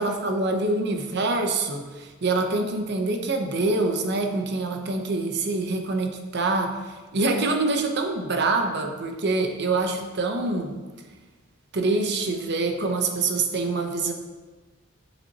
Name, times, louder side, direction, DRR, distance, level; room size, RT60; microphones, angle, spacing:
voice 1, 0.0-10.8 11.7-14.1, right 3 dB, 60° right, 4 dB, 0.8 m, -25 dB
7.5 x 7.2 x 2.9 m, 1.3 s
head